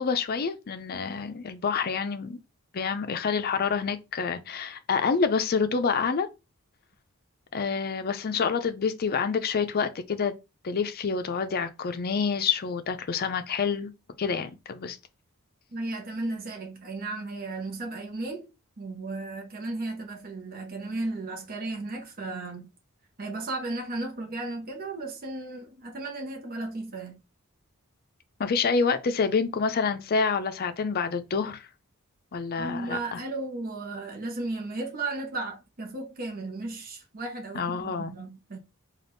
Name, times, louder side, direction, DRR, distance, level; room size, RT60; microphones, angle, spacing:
voice 1, 0.0-2.4 2.7-6.3 7.5-10.3 10.6-13.9 14.2-15.0 28.4-31.7 32.3-33.2 37.5-38.1, left 5 dB, 45° left, 0.5 m, -27 dB
voice 2, 15.7-18.5 18.8-22.7 23.2-27.2 32.6-38.6, right 2 dB, 45° right, 0.8 m, -35 dB
3.9 x 2.4 x 3.4 m
head